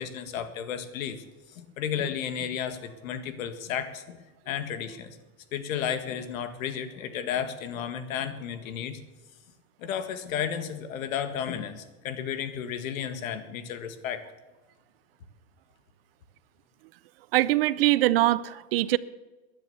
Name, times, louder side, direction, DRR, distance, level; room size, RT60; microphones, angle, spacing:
voice 1, 0.0-4.2 4.5-5.2 5.5-9.0 9.8-14.2, left 8 dB, 75° left, 10 dB, 1.9 m, -33 dB
voice 2, 17.3-19.0, right 16 dB, 45° right, 19 dB, 0.4 m, -22 dB
14.5 x 11.0 x 6.9 m, 1.2 s
supercardioid pair, 165°, 41 cm